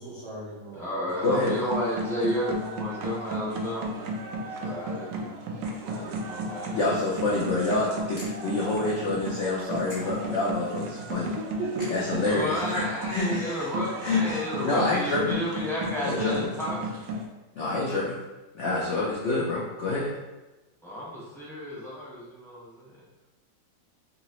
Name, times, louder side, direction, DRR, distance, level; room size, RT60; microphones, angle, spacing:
voice 1, 0.0-1.1 11.1-12.2, right 3 dB, 60° right, -8 dB, 0.7 m, -36 dB
voice 2, 0.7-3.9 4.3-5.4 5.8-7.2 12.1-16.9 20.8-23.0, equal, ahead, -8 dB, 0.6 m, -32 dB
sound 1, 1.1-17.2, right 1 dB, 75° right, 1.2 m, -34 dB
voice 3, 6.7-11.3 11.9-13.6 14.0-15.4 16.0-16.3 17.6-18.2 18.5-20.1, left 3 dB, 70° left, -5 dB, 0.6 m, -27 dB
3.9 x 2.9 x 3.0 m, 1.1 s
omnidirectional pair, 2.0 m